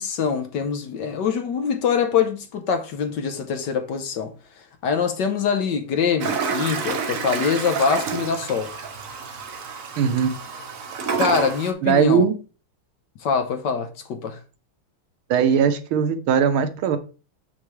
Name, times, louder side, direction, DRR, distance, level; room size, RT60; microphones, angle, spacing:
voice 1, 0.0-8.7 11.2-12.2 13.2-14.4, left 6 dB, 65° left, 1.4 m, -24 dB
Toilet flush, 6.2-11.7, right 5 dB, 55° right, 1.1 m, -29 dB
voice 2, 10.0-10.3 11.8-12.4 15.3-17.0, right 7 dB, 80° right, 1.7 m, -19 dB
7.2 x 5.9 x 3.2 m
omnidirectional pair, 2.3 m